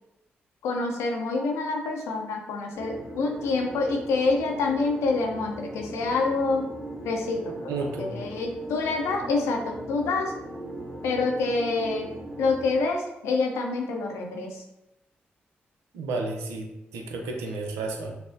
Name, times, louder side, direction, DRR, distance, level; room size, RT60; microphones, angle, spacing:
voice 1, 0.6-6.7 7.0-7.7 8.0-10.3 11.0-12.1 12.4-14.6, left 3 dB, 85° left, 1 dB, 0.6 m, -27 dB
sound 1, 2.7-12.8, right 1 dB, 20° right, 1.2 m, -39 dB
voice 2, 7.7-8.2 15.9-18.1, right 3 dB, 90° right, 2 dB, 0.5 m, -32 dB
5.8 x 2.0 x 2.6 m, 0.90 s
supercardioid pair, 45°, 5 cm